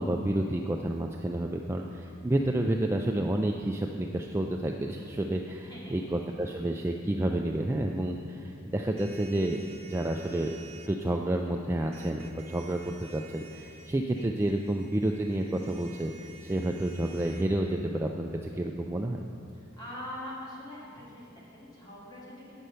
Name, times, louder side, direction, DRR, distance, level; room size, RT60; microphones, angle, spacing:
voice 1, 0.0-10.6 10.9-19.2, right 1 dB, 10° right, 2 dB, 0.3 m, -30 dB
voice 2, 5.6-6.7 13.8-14.3 19.5-22.6, left 1 dB, 20° left, -7 dB, 2.4 m, -44 dB
sound 1, 9.0-10.9 11.9-17.4, right 5 dB, 30° right, 0.8 m, -52 dB
9.0 x 6.5 x 5.5 m, 2.5 s
head